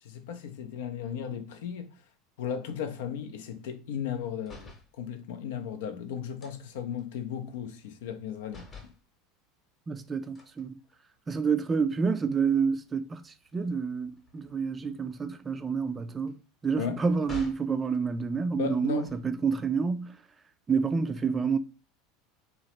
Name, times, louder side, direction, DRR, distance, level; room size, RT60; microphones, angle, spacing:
voice 1, 0.0-1.9 2.4-8.9 16.8-17.0 18.5-19.1, left 8 dB, 75° left, 0.4 m, -36 dB
sound 1, 4.4-4.9 6.4-8.2 8.5-9.0 10.4-11.4 11.9-12.1 12.4-17.8 18.8-19.5, left 4 dB, 30° left, 0.9 m, -50 dB
voice 2, 9.9-10.7 11.3-16.3 16.6-20.2 20.7-21.6, right 5 dB, 25° right, 0.3 m, -28 dB
2.9 x 2.0 x 2.9 m
hypercardioid pair, 85°, 0 cm